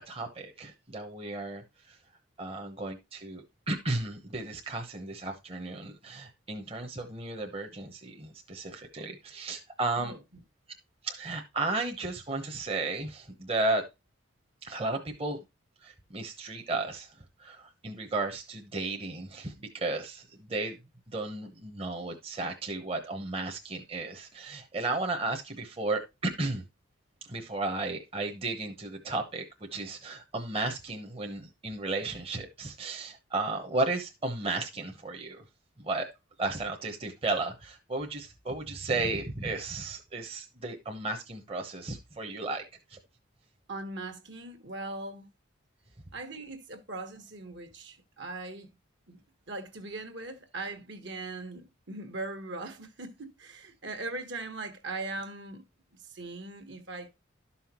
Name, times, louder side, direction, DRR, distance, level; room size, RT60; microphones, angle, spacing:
voice 1, 0.1-2.0 2.4-10.1 11.0-13.8 14.6-15.4 15.8-17.1 17.4-20.7 21.1-26.6 27.3-29.4 29.7-35.4 35.8-36.1 36.4-42.6 42.9-43.0, right 2 dB, 30° right, 1.0 m, -34 dB
voice 2, 43.7-45.3 46.1-48.7 49.1-49.2 49.5-55.6 56.1-57.1, right 2 dB, 60° right, 1.4 m, -40 dB
12.0 x 5.6 x 3.0 m
head